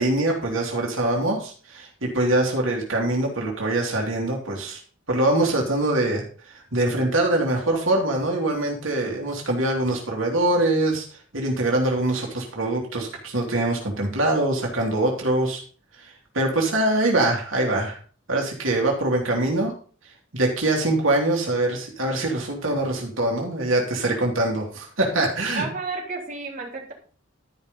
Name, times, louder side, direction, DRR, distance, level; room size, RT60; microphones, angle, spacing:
voice 1, 0.0-4.8 5.1-11.1 11.3-15.6 16.3-18.0 18.3-19.7 20.3-25.7, right 2 dB, 90° right, 0 dB, 2.9 m, -23 dB
voice 2, 25.6-26.9, right 4 dB, 45° right, -2 dB, 3.4 m, -32 dB
12.5 x 5.6 x 5.4 m, 0.41 s
head